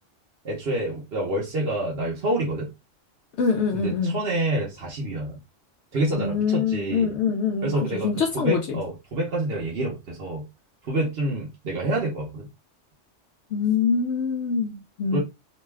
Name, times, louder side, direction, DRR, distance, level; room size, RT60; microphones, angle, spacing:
voice 1, 0.4-2.7 3.7-5.4 5.9-7.1 7.6-10.5 10.8-12.5 15.1-15.2, right 1 dB, 55° right, 1.1 m, -27 dB
voice 2, 3.4-4.2 6.2-7.7 8.0-8.6 13.5-15.2, left 5 dB, 70° left, 0.9 m, -24 dB
3.0 x 2.3 x 3.3 m
omnidirectional pair, 1.3 m